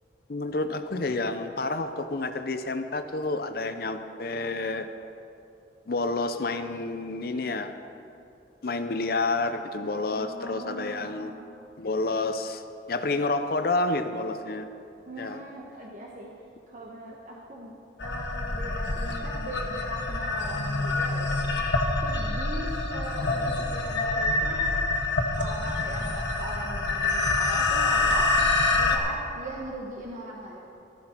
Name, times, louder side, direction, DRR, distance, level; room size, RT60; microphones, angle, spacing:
voice 1, 0.3-4.9 5.9-7.7 8.6-11.3 11.8-12.6 12.9-14.7 15.2-15.4, left 3 dB, 55° left, 9 dB, 0.6 m, -29 dB
voice 2, 10.1-11.5 15.0-16.3 16.7-21.4 21.9-24.8 25.4-30.6, right 1 dB, 45° right, -3 dB, 1.2 m, -40 dB
sound 1, 18.0-29.0, left 3 dB, 75° left, 1.4 m, -26 dB
14.5 x 12.5 x 4.4 m, 2.7 s
head